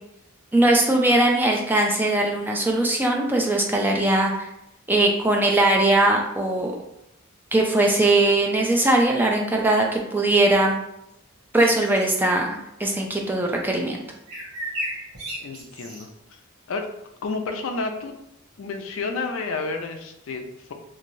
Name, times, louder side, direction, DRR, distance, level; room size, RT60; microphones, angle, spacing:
voice 1, 0.5-4.5 4.9-6.7 7.5-10.8 11.5-14.0, right 2 dB, 10° right, 0 dB, 0.3 m, -20 dB
sound 1, 11.6-12.2 14.3-16.1, equal, 85° right, 0.9 m, -33 dB
voice 2, 15.4-16.1 16.7-16.9 17.2-18.1 18.6-20.7, left 3 dB, 70° left, 5 dB, 0.4 m, -30 dB
3.0 x 2.6 x 2.6 m, 0.82 s
head